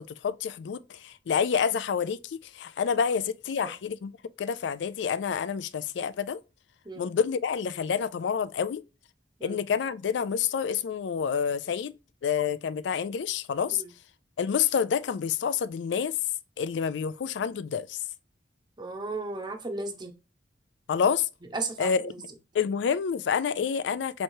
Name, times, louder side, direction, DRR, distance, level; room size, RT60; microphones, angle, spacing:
voice 1, 0.0-4.1 4.4-6.4 7.0-8.8 9.4-11.9 12.2-13.8 14.4-16.1 16.6-18.0 20.9-21.3 21.8-22.1 22.5-24.2, left 7 dB, 75° left, 0.3 m, -28 dB
voice 2, 18.8-20.1 21.5-21.9, right 3 dB, 25° right, 0.8 m, -34 dB
4.4 x 3.1 x 2.6 m
head